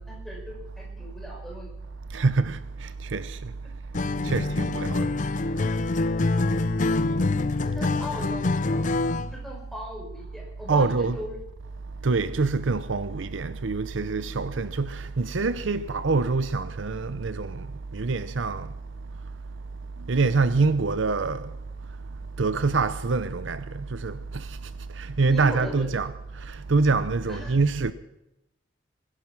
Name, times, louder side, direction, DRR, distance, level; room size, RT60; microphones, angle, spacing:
voice 1, 0.0-1.7 7.8-8.9 9.2-11.4 25.3-25.9 27.3-27.6, equal, ahead, 5.4 m, -38 dB
voice 2, 2.1-3.5 4.2-5.1 10.7-11.2 12.0-17.7 17.9-18.7 20.1-21.5 22.4-24.5 25.0-26.1 26.5-27.9, right 4 dB, 75° right, 0.7 m, -25 dB
Acoustic guitar, 3.9-9.3, left 3 dB, 40° left, 0.5 m, -25 dB
20.5 x 11.5 x 6.1 m
head